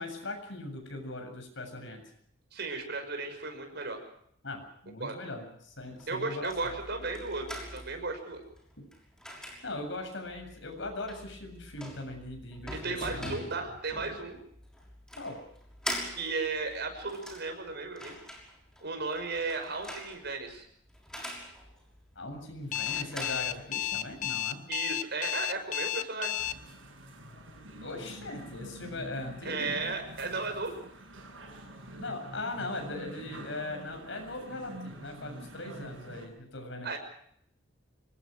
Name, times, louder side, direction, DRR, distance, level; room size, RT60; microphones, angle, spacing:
voice 1, 0.0-2.0 4.4-6.5 8.8-8.9 9.6-13.5 15.2-15.4 22.2-24.7 27.8-29.7 32.0-37.0, left 2 dB, 70° left, 4 dB, 7.5 m, -39 dB
voice 2, 2.5-4.0 5.0-5.2 6.1-8.4 12.7-14.4 16.2-18.2 18.8-20.6 24.7-26.4 29.4-30.8 36.8-37.0, right 3 dB, 60° right, 5 dB, 6.0 m, -35 dB
sound 1, 5.7-24.3, equal, 5° left, 6.1 m, -44 dB
Alarm, 22.7-26.5, left 12 dB, 45° left, 1.3 m, -32 dB
sound 2, 26.4-36.3, right 1 dB, 85° right, 7.6 m, -46 dB
25.5 x 20.5 x 6.3 m, 0.69 s
head